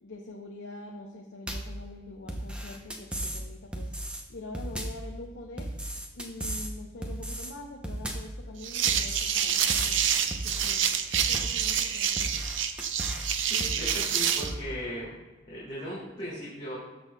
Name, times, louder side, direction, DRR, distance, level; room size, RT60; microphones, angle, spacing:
voice 1, 0.0-3.9 4.3-5.7 6.1-12.4, left 2 dB, 75° left, 1 dB, 0.7 m, -44 dB
sound 1, 1.5-1.8 2.3-3.4 3.7-4.2 4.5-5.1 5.6-6.7 7.0-7.5 7.8-8.4 8.9-10.0 10.3-10.8 11.1-11.6 12.2-13.3 13.6-14.1 14.4-14.6, right 1 dB, 5° right, 0.6 m, -35 dB
sound 2, 8.6-14.5, right 8 dB, 75° right, 0.5 m, -27 dB
voice 2, 13.4-15.2 15.5-16.8, equal, 25° left, -10 dB, 2.3 m, -37 dB
13.0 x 6.1 x 2.2 m, 1.2 s
head